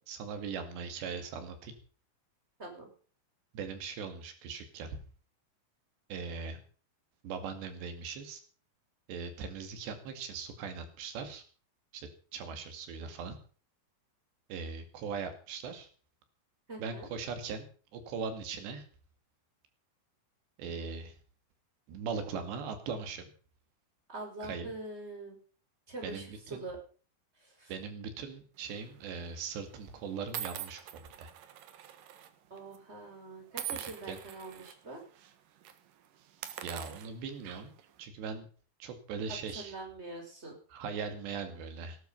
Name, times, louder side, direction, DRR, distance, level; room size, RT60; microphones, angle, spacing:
voice 1, 0.1-1.7 3.5-5.0 6.1-6.6 7.2-8.4 9.1-11.4 11.9-13.4 14.5-15.9 16.8-18.9 20.6-21.2 21.9-23.3 24.4-24.7 26.0-26.7 27.7-31.3 33.7-34.2 36.6-37.7 38.0-38.5 38.8-39.8 40.7-42.0, right 5 dB, 80° right, 8 dB, 4.5 m, -40 dB
voice 2, 16.7-17.1 24.1-25.4 25.9-26.8 27.4-27.7 32.5-35.0 39.5-40.6, right 2 dB, 15° right, 2 dB, 5.3 m, -44 dB
sound 1, 28.7-29.0 29.7-29.8 30.3-32.3 32.6-32.8 33.5-34.7 35.2-35.3 35.6-35.8 36.3-37.9, right 10 dB, 65° right, 2.6 m, -43 dB
18.5 x 11.5 x 5.4 m, 0.41 s
omnidirectional pair, 4.9 m